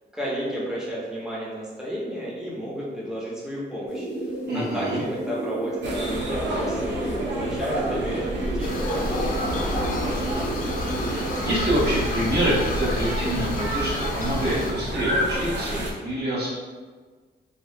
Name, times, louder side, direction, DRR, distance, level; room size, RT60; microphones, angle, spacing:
voice 1, 0.1-4.1 4.5-9.4, equal, 5° right, -7 dB, 0.6 m, -32 dB
sound 1, 3.9-11.4, right 1 dB, 35° right, 1.0 m, -32 dB
voice 2, 4.5-5.0 10.0-10.7 11.0-16.5, equal, 65° right, -7 dB, 1.0 m, -27 dB
sound 2, 5.8-15.9, right 1 dB, 80° right, 0.6 m, -29 dB
sound 3, 8.6-14.7, left 2 dB, 50° left, 0.4 m, -33 dB
2.7 x 2.3 x 3.1 m, 1.4 s
wide cardioid pair, 175°, 18 cm